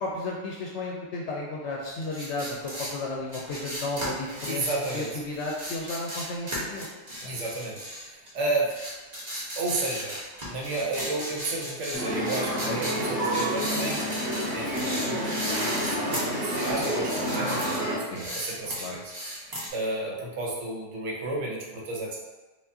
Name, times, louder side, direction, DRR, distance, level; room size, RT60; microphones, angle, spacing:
voice 1, 0.0-4.7 4.9-6.9 7.2-7.4 12.6-12.8 18.1-18.3 18.8-19.0, left 2 dB, 70° left, -2 dB, 0.8 m, -33 dB
sound 1, 2.0-8.4 8.7-17.8 18.1-19.7, equal, 35° right, 1.1 m, -36 dB
voice 2, 4.5-5.1 7.2-8.8 9.6-10.2 10.5-14.1 14.5-19.1 19.4-22.2, right 2 dB, 75° right, -2 dB, 1.1 m, -32 dB
sound 2, 11.9-18.0, right 1 dB, 5° left, 1.3 m, -29 dB
4.6 x 2.4 x 2.6 m, 1.2 s
omnidirectional pair, 1.3 m